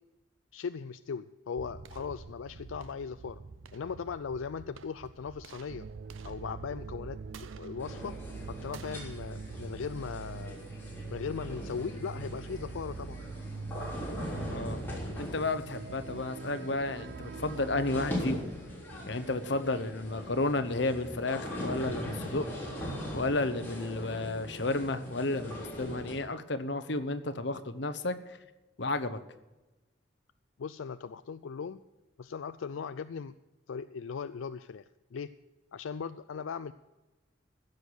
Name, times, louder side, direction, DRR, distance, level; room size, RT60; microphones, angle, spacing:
voice 1, 0.5-3.4 3.7-5.9 6.2-8.1 8.5-10.7 11.1-13.2 30.6-31.8 32.2-33.4 33.7-34.8 35.1-35.3 35.7-36.7, left 6 dB, 85° left, 11 dB, 0.4 m, -38 dB
sound 1, 1.6-10.7, right 4 dB, 85° right, 0.7 m, -49 dB
sound 2, 5.7-18.1, right 4 dB, 50° right, 0.3 m, -44 dB
sound 3, 7.8-26.1, equal, 10° left, 3.6 m, -40 dB
voice 2, 15.2-18.4 19.1-22.4 23.1-28.4 28.8-29.2, left 2 dB, 60° left, 10 dB, 1.0 m, -32 dB
15.0 x 6.6 x 7.9 m, 1.1 s
head